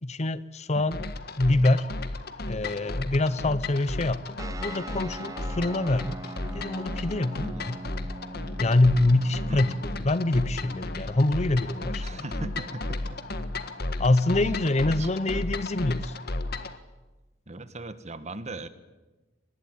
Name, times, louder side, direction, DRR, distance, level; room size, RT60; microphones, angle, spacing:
voice 1, 0.0-1.0 1.4-1.9 2.5-6.2 6.5-7.8 8.6-9.7 10.0-12.2 14.0-16.2, left 2 dB, 35° left, 16 dB, 0.8 m, -25 dB
sound 1, 0.9-16.8, left 2 dB, 55° left, 1.6 m, -34 dB
sound 2, 4.4-15.3, right 2 dB, 20° right, 1.0 m, -44 dB
voice 2, 12.0-13.2 14.4-14.6 15.0-15.4 17.5-18.7, right 2 dB, 35° right, 12 dB, 1.5 m, -39 dB
24.0 x 20.5 x 9.2 m, 1.2 s
head